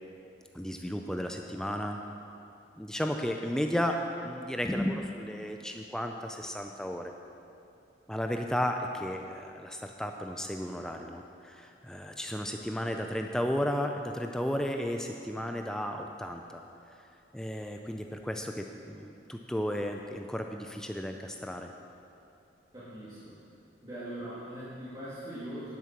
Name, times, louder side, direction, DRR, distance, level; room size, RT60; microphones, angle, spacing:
voice 1, 0.5-2.0 2.8-7.1 8.1-16.6 17.3-21.7, equal, 5° left, 3 dB, 0.4 m, -34 dB
voice 2, 22.7-23.3 23.8-25.8, right 1 dB, 25° right, -12 dB, 2.1 m, -41 dB
10.5 x 7.5 x 5.9 m, 2.7 s
head